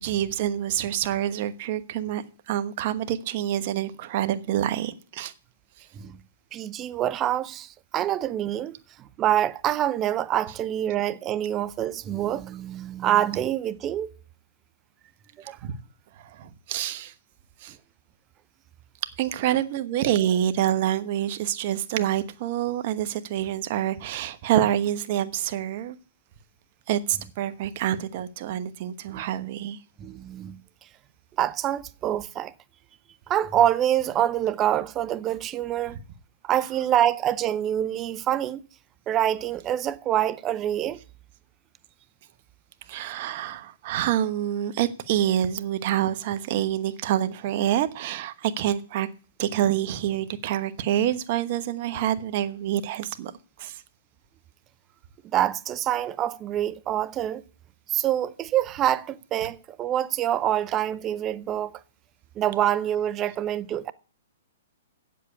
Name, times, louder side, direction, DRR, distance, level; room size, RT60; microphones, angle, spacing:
voice 1, 0.0-5.3 15.4-15.7 16.2-17.1 17.6-17.8 19.2-26.0 26.9-29.8 42.9-49.1 49.4-53.3 53.6-53.8, right 11 dB, 45° right, 1.1 m, -27 dB
voice 2, 6.5-8.7 9.2-14.1 15.5-15.6 29.1-29.2 30.0-30.6 31.4-32.5 33.3-36.0 36.4-38.6 39.1-41.0 55.3-57.4 57.9-61.8 62.4-63.9, right 11 dB, 25° right, 0.6 m, -26 dB
8.3 x 7.6 x 8.4 m
hypercardioid pair, 140°, 0 cm